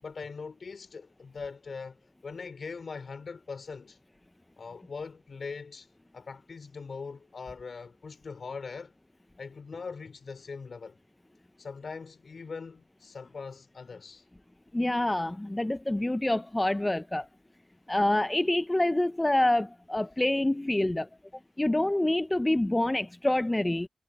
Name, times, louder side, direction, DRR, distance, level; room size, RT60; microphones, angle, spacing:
voice 1, 0.0-2.0 2.2-4.0 4.6-5.9 6.1-8.9 9.4-11.0 11.6-14.2, left 5 dB, 65° left, 4.4 m, -41 dB
voice 2, 14.7-17.3 17.9-21.1 21.6-23.9, left 1 dB, 20° left, 0.7 m, -26 dB
cardioid pair, 45°, 0 cm